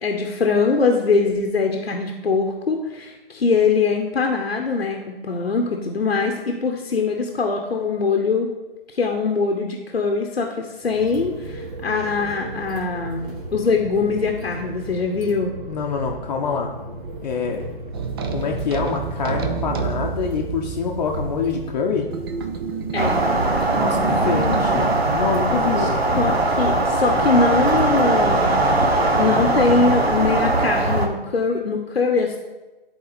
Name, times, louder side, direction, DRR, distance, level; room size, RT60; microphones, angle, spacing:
voice 1, 0.0-8.5 8.9-15.5 22.9-23.2 25.8-25.9 26.2-28.8 29.1-32.4, left 4 dB, 90° left, 2 dB, 1.0 m, -22 dB
sound 1, 10.8-28.4, right 1 dB, 55° right, 1.4 m, -36 dB
voice 2, 15.7-16.7 17.2-17.7 18.3-22.1 23.7-25.9, left 5 dB, 45° left, 1 dB, 0.7 m, -25 dB
sound 2, 17.9-25.0, right 6 dB, 25° right, 0.4 m, -29 dB
sound 3, 23.0-31.1, right 2 dB, 90° right, 1.2 m, -20 dB
10.0 x 4.2 x 4.1 m, 1.1 s
figure-of-eight pair, 140°, 30 cm